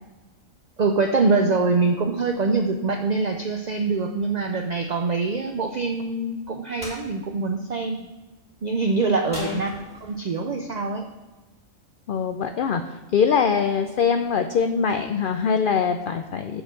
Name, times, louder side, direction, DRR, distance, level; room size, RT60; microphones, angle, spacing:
voice 1, 0.8-8.0 8.6-9.7 10.0-11.0, right 3 dB, 55° right, 4 dB, 0.5 m, -24 dB
sound 1, 6.8-7.0 9.3-10.3, equal, 5° right, 2.1 m, -38 dB
voice 2, 12.1-12.8 13.1-16.6, left 6 dB, 75° left, 7 dB, 0.5 m, -23 dB
7.9 x 4.4 x 6.3 m, 1.2 s
omnidirectional pair, 1.4 m